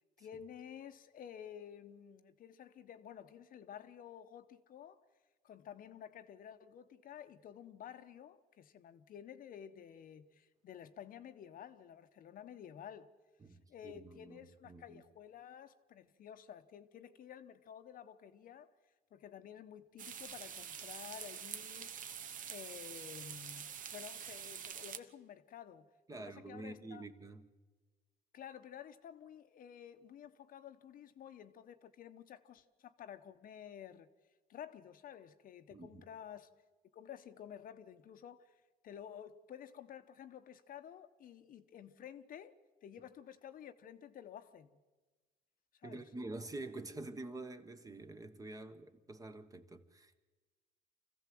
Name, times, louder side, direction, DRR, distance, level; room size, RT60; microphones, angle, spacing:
voice 1, 0.2-5.0 5.4-13.1 13.5-18.7 19.1-21.9 22.5-27.1 28.3-34.1 34.5-36.5 36.9-38.6 38.8-42.5 42.8-44.7 45.8-46.1, left 9 dB, 55° left, 1.0 m, -52 dB
voice 2, 13.4-14.4 14.7-15.0 26.1-27.5 35.7-36.0 45.8-50.2, right 2 dB, 20° right, 1.3 m, -47 dB
sound 1, 20.0-25.0, right 8 dB, 50° right, 1.1 m, -46 dB
25.0 x 15.5 x 7.7 m
cardioid pair, 110°, 17 cm